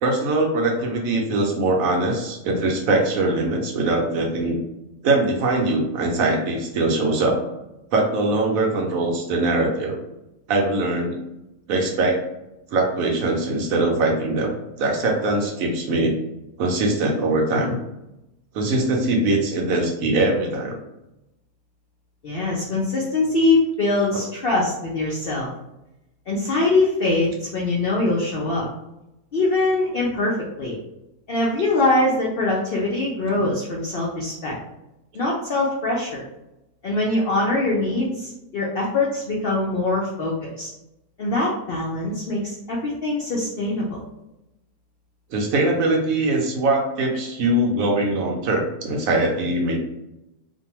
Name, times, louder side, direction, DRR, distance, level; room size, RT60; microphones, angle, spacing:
voice 1, 0.0-4.6 5.0-7.4 7.9-10.0 10.5-11.2 11.7-12.2 12.7-16.1 16.6-17.8 18.5-20.8 24.1-24.2 33.3-33.5 45.3-49.8, right 2 dB, 70° right, 0 dB, 0.9 m, -22 dB
voice 2, 22.2-25.5 26.3-28.7 29.3-30.8 31.3-34.6 35.1-36.2 36.8-40.7 41.2-44.0, left 2 dB, 70° left, -4 dB, 0.5 m, -23 dB
2.6 x 2.1 x 2.9 m, 0.92 s
omnidirectional pair, 1.6 m